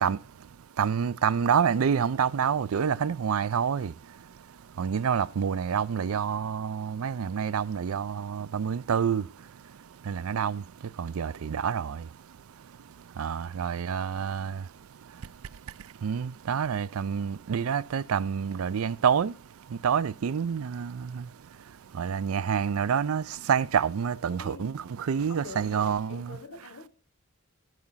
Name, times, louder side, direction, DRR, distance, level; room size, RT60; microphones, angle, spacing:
voice 1, 0.8-3.9 4.8-9.2 10.1-10.6 11.0-12.0 13.2-14.6 16.0-19.3 19.8-21.2 22.0-26.4, right 7 dB, 80° right, 0.4 m, -27 dB
voice 2, 24.4-24.7 25.3-26.9, left 3 dB, 90° left, 1.1 m, -45 dB
12.5 x 4.9 x 5.5 m
head